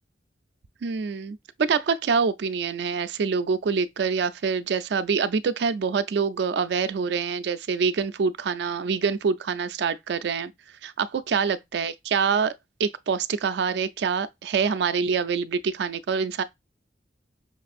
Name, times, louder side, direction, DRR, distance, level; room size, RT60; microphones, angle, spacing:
voice 1, 0.8-10.5 10.8-12.5 12.8-16.4, right 5 dB, 65° right, 0.3 m, -25 dB
5.8 x 2.5 x 2.4 m
head